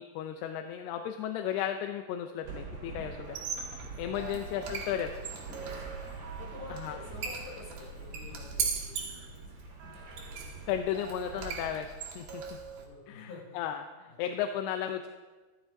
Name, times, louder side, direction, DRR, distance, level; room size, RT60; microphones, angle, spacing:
voice 1, 0.0-3.4 4.0-5.1 6.8-7.0 10.7-11.9 12.2-12.4 13.1-13.3 13.6-13.8 14.2-15.1, left 10 dB, 85° left, 6 dB, 2.5 m, -34 dB
sound 1, 2.4-11.7, right 3 dB, 50° right, 4.9 m, -45 dB
Squeak, 3.2-12.9, right 6 dB, 70° right, 3.1 m, -40 dB
voice 2, 3.8-4.3 5.6-9.8 12.3-13.8 14.1-14.2, left 3 dB, 65° left, -3 dB, 4.6 m, -50 dB
14.5 x 12.5 x 2.6 m, 1.3 s
omnidirectional pair, 4.7 m